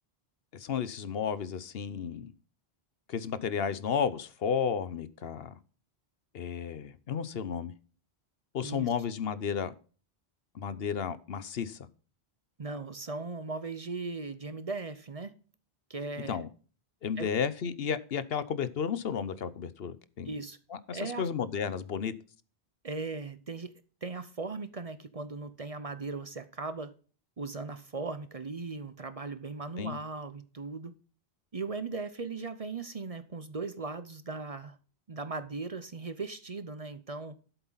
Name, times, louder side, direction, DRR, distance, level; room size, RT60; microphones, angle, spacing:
voice 1, 0.5-2.3 3.1-5.5 6.3-7.7 8.5-9.7 10.5-11.9 16.2-16.5 17.0-20.3 20.7-22.1 29.8-30.0, left 7 dB, 70° left, 1.0 m, -33 dB
voice 2, 12.6-15.3 15.9-16.4 17.2-17.3 20.2-20.6 20.9-21.3 22.8-23.7 24.0-26.9 27.4-30.9 31.5-34.8 35.1-37.4, right 3 dB, 40° right, 0.7 m, -38 dB
11.0 x 8.1 x 4.0 m
omnidirectional pair, 1.1 m